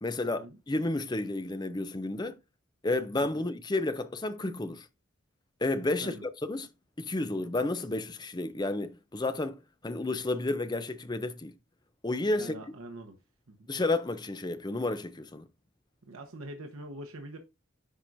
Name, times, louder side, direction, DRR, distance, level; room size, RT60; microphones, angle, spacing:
voice 1, 0.0-2.4 2.8-4.9 5.6-6.7 7.0-11.5 12.0-12.6 13.7-15.5, left 2 dB, 20° left, 0.6 m, -31 dB
voice 2, 12.4-13.2 13.5-13.7 16.0-17.4, right 1 dB, 85° right, 1.0 m, -44 dB
10.0 x 4.7 x 2.6 m
head